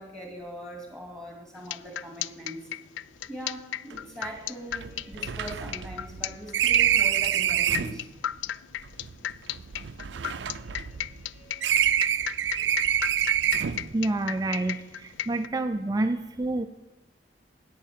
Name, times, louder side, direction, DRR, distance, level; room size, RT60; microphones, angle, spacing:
voice 1, 0.0-2.6 3.3-8.1 10.5-11.8, right 1 dB, 5° left, 1 dB, 2.4 m, -42 dB
sound 1, 1.5-15.5, left 11 dB, 90° left, 0.3 m, -34 dB
sound 2, 3.9-4.0 4.2-4.3 4.7-8.0 8.9-11.3 11.6-13.9, right 10 dB, 80° right, 0.4 m, -26 dB
voice 2, 13.9-16.7, right 2 dB, 20° right, 8 dB, 0.3 m, -28 dB
9.2 x 9.0 x 7.5 m, 1.1 s
head